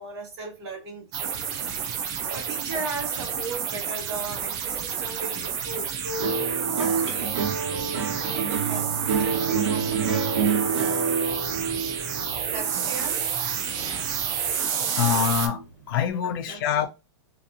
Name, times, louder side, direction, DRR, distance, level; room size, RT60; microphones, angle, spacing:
voice 1, 0.0-2.0 2.2-11.2 12.5-13.2 13.8-14.0 16.2-16.9, right 2 dB, 60° right, 1.2 m, -38 dB
sound 1, 1.1-15.5, right 7 dB, 25° right, 0.4 m, -30 dB
sound 2, 6.2-14.6 15.0-15.6, right 6 dB, 80° right, 1.0 m, -28 dB
voice 2, 14.9-16.9, left 9 dB, 50° left, 0.5 m, -25 dB
2.8 x 2.5 x 2.4 m
supercardioid pair, 165°, 15 cm